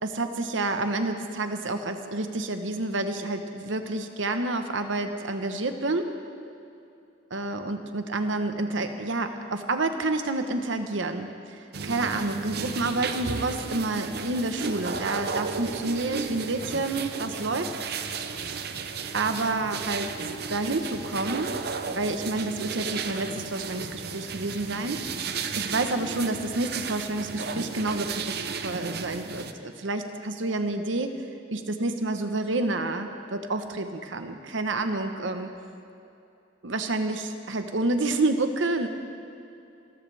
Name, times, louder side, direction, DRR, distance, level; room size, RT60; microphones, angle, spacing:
voice 1, 0.0-6.1 7.3-11.3 11.8-17.7 18.1-18.2 19.1-20.1 20.5-21.6 21.9-25.1 25.5-31.2 31.5-35.5 36.6-38.9, right 2 dB, 80° right, 7 dB, 1.1 m, -29 dB
sound 1, 11.7-29.5, right 5 dB, 55° right, 0.7 m, -34 dB
26.5 x 14.0 x 3.4 m, 2.7 s
head